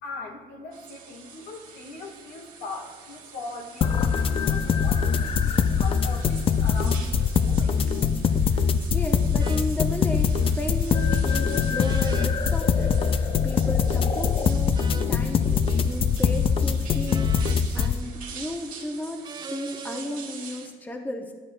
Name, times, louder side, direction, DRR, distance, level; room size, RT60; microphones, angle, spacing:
voice 1, 0.0-7.8, left 3 dB, 75° left, 1 dB, 1.5 m, -40 dB
sound 1, 0.7-20.7, right 6 dB, 55° right, 1.4 m, -45 dB
sound 2, 3.8-17.9, left 6 dB, 35° left, 0.4 m, -23 dB
voice 2, 8.9-21.3, left 1 dB, 10° left, 3 dB, 0.7 m, -34 dB
sound 3, 9.4-9.7 11.8-12.3 14.7-15.1 17.1-17.9 19.2-20.1, right 6 dB, 25° right, 0.4 m, -40 dB
12.5 x 7.6 x 2.2 m, 1.5 s
cardioid pair, 110°, 17 cm